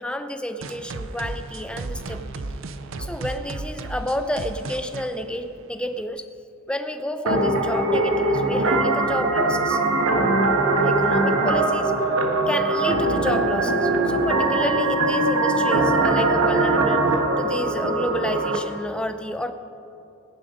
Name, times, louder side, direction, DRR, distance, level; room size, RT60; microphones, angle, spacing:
voice 1, 0.0-2.5 3.0-6.3 6.7-9.8 10.8-12.1 12.5-19.5, equal, 5° left, 8 dB, 0.5 m, -30 dB
sound 1, 0.6-6.1, right 3 dB, 65° right, 0.6 m, -34 dB
sound 2, 7.3-18.6, right 2 dB, 80° right, 1.5 m, -21 dB
18.5 x 10.5 x 5.2 m, 2.7 s
head